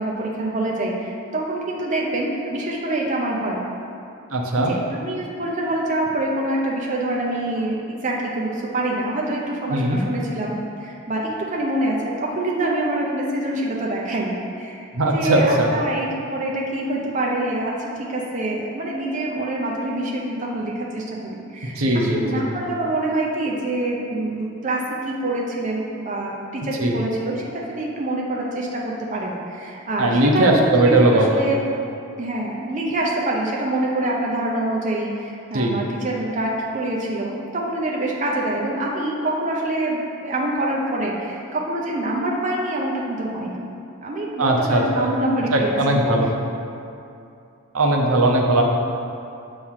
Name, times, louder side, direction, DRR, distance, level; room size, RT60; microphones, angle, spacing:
voice 1, 0.0-3.7 4.6-31.6 32.2-43.7 44.0-46.0, right 1 dB, 35° right, -3 dB, 0.6 m, -26 dB
voice 2, 4.3-4.7 9.7-10.0 14.9-15.7 21.8-22.4 26.8-27.0 30.0-31.5 35.5-35.8 44.4-45.1 45.5-46.3 47.7-48.6, right 1 dB, 75° right, 1 dB, 0.7 m, -19 dB
7.2 x 3.2 x 5.6 m, 2.6 s
head